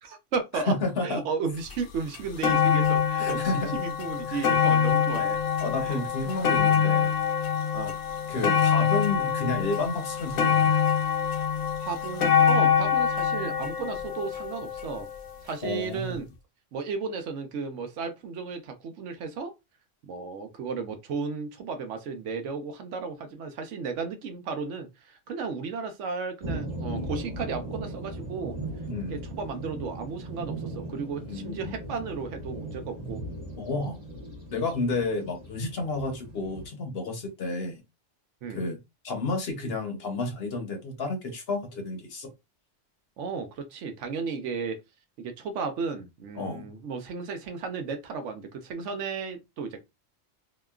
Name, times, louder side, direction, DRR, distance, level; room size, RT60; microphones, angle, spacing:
voice 1, 0.0-0.7 1.0-5.4 5.8-6.0 7.7-7.9 11.8-15.1 15.4-16.3 16.7-19.5 20.0-28.6 29.1-33.2 38.4-38.6 43.2-44.8 45.2-49.8, right 5 dB, 75° right, 0.9 m, -34 dB
voice 2, 0.5-1.3 3.2-3.8 4.3-4.4 5.6-7.1 8.3-10.7 15.6-16.1 28.9-29.2 31.2-31.7 33.6-34.0 34.5-37.8 38.5-38.8 39.0-42.3 46.4-46.6, left 3 dB, 60° left, 0.9 m, -31 dB
sound 1, 1.7-1.8 2.1-15.3 16.1-16.2, left 7 dB, 80° left, 1.0 m, -25 dB
sound 2, 26.4-36.7, right 1 dB, 35° right, 1.1 m, -38 dB
2.8 x 2.2 x 2.3 m
omnidirectional pair, 1.3 m